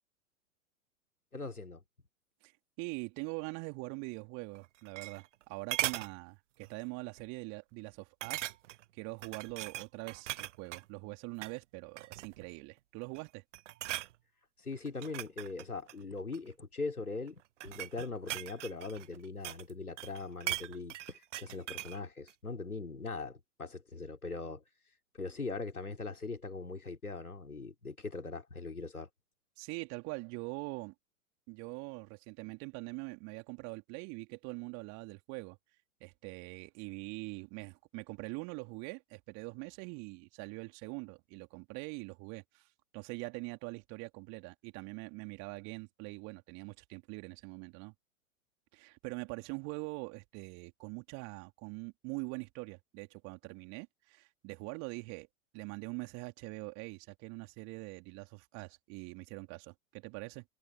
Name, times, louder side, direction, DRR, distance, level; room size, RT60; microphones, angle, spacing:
voice 1, 1.3-1.8 14.6-24.6 25.2-29.1, left 3 dB, 85° left, 4.3 m, -41 dB
voice 2, 2.8-8.5 8.9-13.4 29.6-30.9 31.5-35.6 36.0-42.6 42.9-47.9 48.7-55.3 55.5-60.4, right 31 dB, 40° right, 3.4 m, -43 dB
sound 1, 4.5-5.4 5.7-6.1 6.6-6.8 7.2-7.3 8.2-8.8 9.2-10.8 11.3-11.6 12.0-12.5 13.0-13.3 13.5-14.1 14.8-16.5 17.3-19.7 20.0-22.0 22.3-22.4, right 14 dB, 60° right, 0.5 m, -39 dB
figure-of-eight pair, 105°, 43 cm